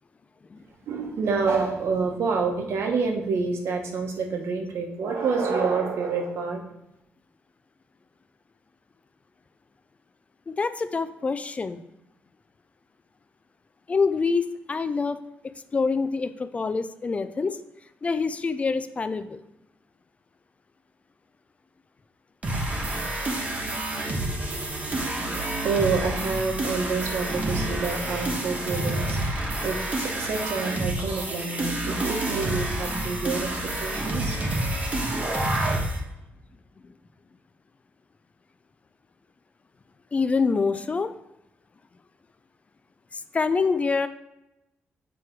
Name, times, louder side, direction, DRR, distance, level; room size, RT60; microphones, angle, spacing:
voice 1, 0.9-6.6 25.6-34.4, right 4 dB, 75° right, 3 dB, 1.0 m, -28 dB
voice 2, 10.5-11.8 13.9-15.2 15.7-17.6 18.0-19.4 40.1-41.1 43.1-44.1, left 4 dB, 30° left, 11 dB, 0.3 m, -26 dB
sound 1, 22.4-36.0, right 1 dB, 30° right, 1.1 m, -28 dB
7.7 x 3.1 x 4.5 m, 0.89 s
wide cardioid pair, 130°, 5 cm